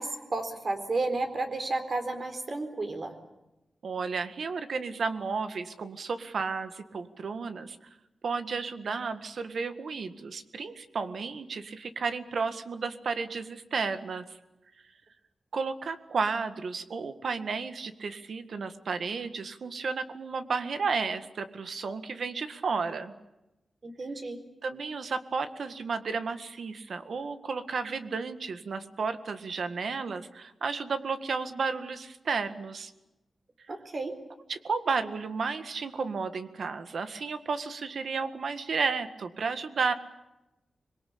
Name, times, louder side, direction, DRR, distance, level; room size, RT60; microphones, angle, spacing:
voice 1, 0.0-3.1 23.8-24.4 33.7-34.1, right 2 dB, 45° right, 7 dB, 4.0 m, -32 dB
voice 2, 3.8-7.8 8.2-14.2 15.5-23.1 24.6-32.9 34.5-39.9, right 5 dB, 65° right, 10 dB, 1.8 m, -32 dB
25.5 x 22.5 x 8.7 m, 0.98 s
wide cardioid pair, 145°, 0 cm